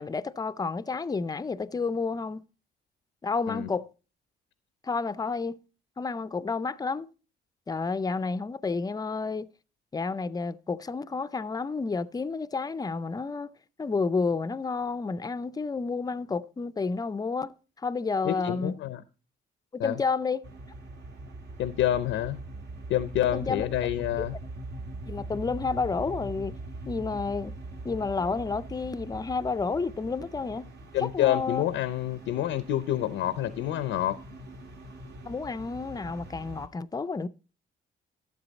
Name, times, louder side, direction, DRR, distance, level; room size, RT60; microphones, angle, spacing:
voice 1, 0.0-2.4 3.2-3.9 4.8-5.6 6.0-7.1 7.7-9.5 9.9-13.5 13.8-17.5 17.8-18.8 19.7-20.5 23.3-23.7 25.1-26.6 26.9-27.5 27.8-30.7 31.0-31.6 35.3-37.3, left 4 dB, 20° left, 0.5 m, -30 dB
voice 2, 18.2-19.0 19.8-20.0 21.6-22.4 22.9-24.4 30.9-34.2, left 12 dB, 85° left, 0.6 m, -28 dB
sound 1, 20.4-36.7, right 2 dB, 60° right, 1.7 m, -42 dB
12.0 x 7.8 x 4.0 m
cardioid pair, 90°, 20 cm